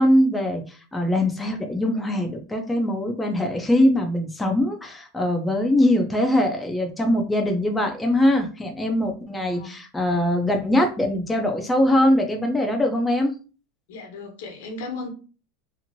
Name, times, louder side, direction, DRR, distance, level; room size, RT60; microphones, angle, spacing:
voice 1, 0.0-13.3, left 1 dB, 5° left, 0.4 m, -22 dB
voice 2, 9.5-9.8 13.9-15.1, left 3 dB, 75° left, 1.0 m, -35 dB
2.9 x 2.5 x 2.6 m
supercardioid pair, 155°, 0 cm